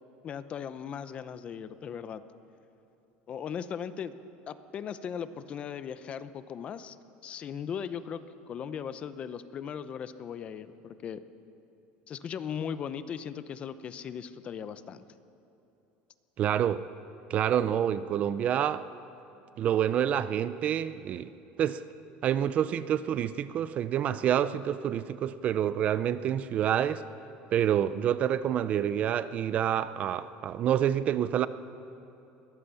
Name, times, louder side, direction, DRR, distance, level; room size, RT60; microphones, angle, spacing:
voice 1, 0.2-2.2 3.3-4.2 4.5-7.0 7.2-8.2 8.5-11.2 12.1-15.0, left 8 dB, 30° left, 13 dB, 0.7 m, -38 dB
voice 2, 16.4-16.8 17.3-18.9 19.6-21.3 21.6-21.8 22.2-27.0 27.5-31.5, right 10 dB, 30° right, 15 dB, 0.5 m, -27 dB
21.5 x 17.5 x 7.0 m, 2.9 s
cardioid pair, 165°, 4 cm